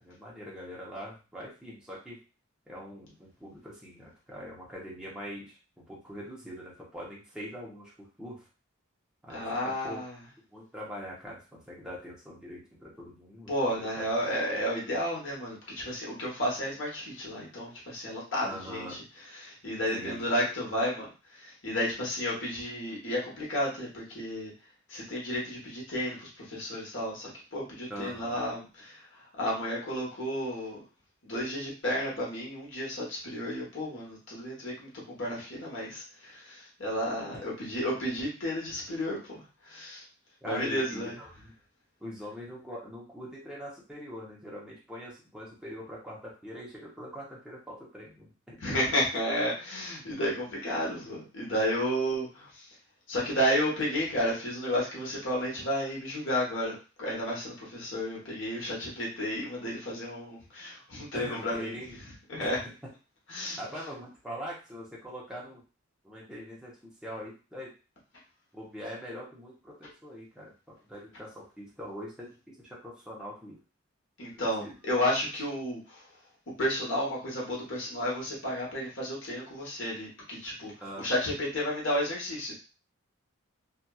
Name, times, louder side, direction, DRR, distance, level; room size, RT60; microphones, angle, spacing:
voice 1, 0.0-2.2 2.7-5.6 5.9-8.3 9.2-10.0 10.5-13.5 13.8-14.1 18.4-19.0 19.9-20.3 27.9-28.4 40.4-41.5 42.0-48.6 61.1-62.0 62.4-62.5 63.6-65.6 66.0-67.7 68.5-70.5 70.8-73.6 74.3-74.7 80.8-81.3, equal, 5° right, -6 dB, 0.8 m, -43 dB
voice 2, 9.3-10.2 13.5-19.0 19.3-21.1 21.3-24.5 24.9-30.8 31.2-40.0 40.4-41.1 48.6-52.7 53.1-61.7 62.3-62.6 63.3-63.6 74.2-76.1 76.6-80.7 81.0-82.5, equal, 60° left, -4 dB, 1.1 m, -32 dB
2.8 x 2.4 x 2.3 m, 0.33 s
head